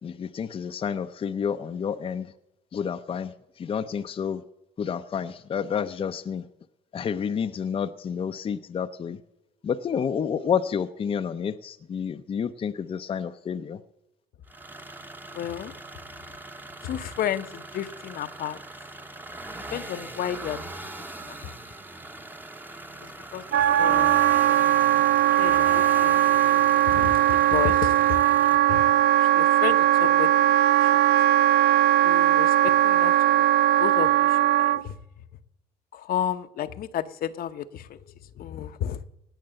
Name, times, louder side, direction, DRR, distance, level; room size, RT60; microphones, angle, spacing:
voice 1, 0.0-2.3 2.7-3.3 3.6-4.4 4.8-6.4 6.9-9.2 9.6-13.8, left 7 dB, 35° left, 8 dB, 0.6 m, -29 dB
sound 1, 14.5-28.5, right 2 dB, 10° right, 1.0 m, -40 dB
voice 2, 15.3-15.8 16.8-18.6 19.7-20.6 21.2-21.4 23.0-25.1 25.4-26.2 26.9-28.0 28.7-28.8 29.1-30.5 30.8-30.9 32.0-33.5 33.8-34.9 35.9-39.0, left 10 dB, 60° left, 10 dB, 0.8 m, -32 dB
Wind instrument woodwind instrument, 23.5-34.8, right 12 dB, 75° right, 0.5 m, -20 dB
18.5 x 6.6 x 7.7 m, 0.93 s
cardioid pair, 110°, 17 cm